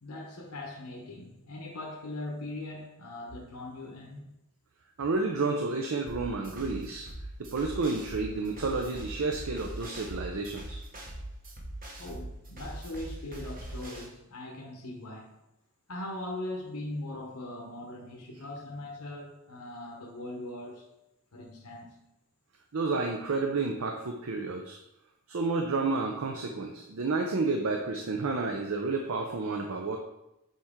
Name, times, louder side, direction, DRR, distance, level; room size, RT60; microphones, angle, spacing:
voice 1, 0.0-4.3 12.0-15.4 15.9-20.9 21.3-22.0, left 1 dB, 90° left, -1 dB, 1.0 m, -40 dB
voice 2, 5.0-7.1 7.4-10.8 22.7-24.8 25.3-30.0, right 3 dB, 65° right, 3 dB, 0.6 m, -30 dB
sound 1, 6.1-14.1, right 1 dB, 40° right, 1.2 m, -41 dB
7.2 x 4.4 x 3.7 m, 0.90 s
head